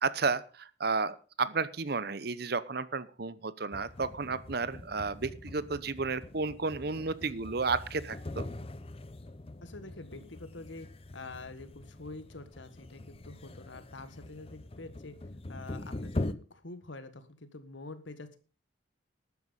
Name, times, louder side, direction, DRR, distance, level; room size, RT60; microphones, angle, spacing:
voice 1, 0.0-8.5, right 4 dB, 55° right, 17 dB, 0.8 m, -32 dB
sound 1, 3.7-16.3, left 2 dB, 30° left, 0.7 m, -42 dB
voice 2, 9.6-10.9 11.1-15.2 15.5-18.4, left 2 dB, 75° left, 11 dB, 1.7 m, -46 dB
12.5 x 9.4 x 5.5 m, 0.36 s
head